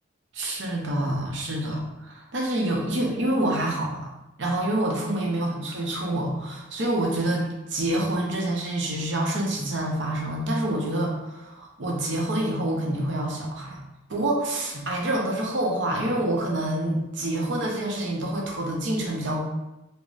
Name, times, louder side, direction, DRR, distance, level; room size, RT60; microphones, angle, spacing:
voice 1, 0.3-4.1 4.4-13.8 14.1-19.4, right 1 dB, 65° right, -1 dB, 0.6 m, -27 dB
3.9 x 2.0 x 2.4 m, 0.95 s
head